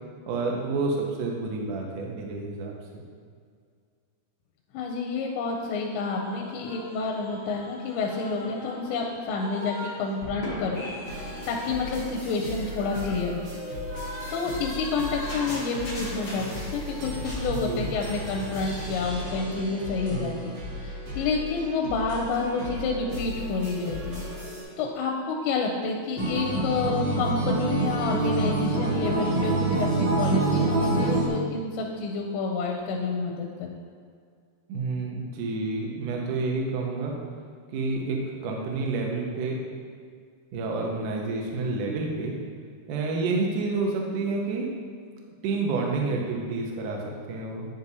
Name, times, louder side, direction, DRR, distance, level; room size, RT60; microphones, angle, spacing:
voice 1, 0.3-3.0 17.5-17.9 20.1-20.3 34.7-37.1 37.7-39.6 40.5-42.4 42.9-44.7 45.4-47.7, right 3 dB, 85° right, -1 dB, 1.8 m, -29 dB
voice 2, 4.7-10.8 11.1-13.4 14.3-24.2 24.8-33.8, left 4 dB, 90° left, 0 dB, 2.9 m, -29 dB
sound 1, 6.2-10.0 10.2-16.9 17.2-17.5, left 1 dB, 60° left, 1.0 m, -39 dB
sound 2, 11.0-24.6, left 1 dB, 70° right, 1.3 m, -36 dB
Acoustic guitar, 26.2-31.3, right 2 dB, 50° right, 1.6 m, -25 dB
9.4 x 5.4 x 2.8 m, 2.1 s
omnidirectional pair, 5.1 m